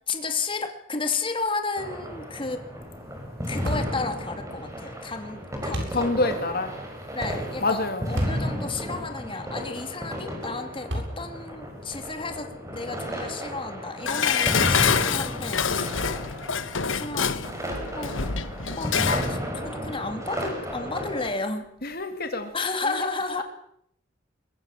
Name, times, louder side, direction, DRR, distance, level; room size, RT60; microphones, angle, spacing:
voice 1, 0.1-2.6 3.5-6.1 7.1-7.8 8.1-15.9 16.9-17.3 17.9-18.1 18.8-18.9 19.2-21.7 22.5-23.4, left 3 dB, 25° left, 6 dB, 2.8 m, -32 dB
sound 1, 1.8-21.3, equal, 15° right, 6.1 m, -33 dB
sound 2, 3.6-4.0 5.7-6.0 8.1-8.4 9.1-9.2 10.9-11.4, equal, 65° right, 7.3 m, -30 dB
voice 2, 5.9-6.7 7.6-8.1 21.8-22.5 22.8-23.1 23.4-23.5, left 2 dB, 50° left, 7 dB, 2.4 m, -27 dB
Dishes pots and pans, 14.1-19.3 19.7-19.8, left 6 dB, 80° left, 1.3 m, -26 dB
23.0 x 22.5 x 7.5 m, 0.69 s
head